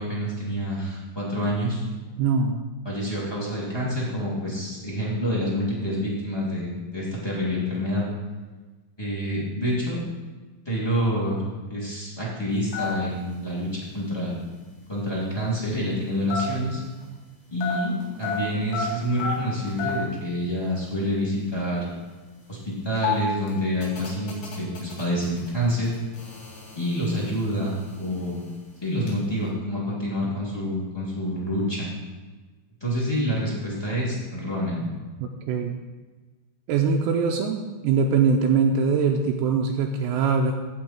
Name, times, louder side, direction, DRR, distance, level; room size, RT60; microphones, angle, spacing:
voice 1, 0.0-1.8 2.8-8.0 9.0-10.0 10.6-11.4 11.7-14.3 14.9-16.8 17.5-21.9 22.5-25.9 26.7-28.4 28.8-31.9 32.8-34.9, equal, 10° left, -6 dB, 1.4 m, -27 dB
voice 2, 2.2-2.7 35.2-35.8 36.7-40.5, right 5 dB, 85° right, 2 dB, 2.4 m, -22 dB
sound 1, 12.5-17.3 17.6-20.2 20.4-20.5 20.7-21.0 21.6-29.2, left 6 dB, 60° left, 4.1 m, -34 dB
16.0 x 5.5 x 4.4 m, 1.3 s
omnidirectional pair, 5.6 m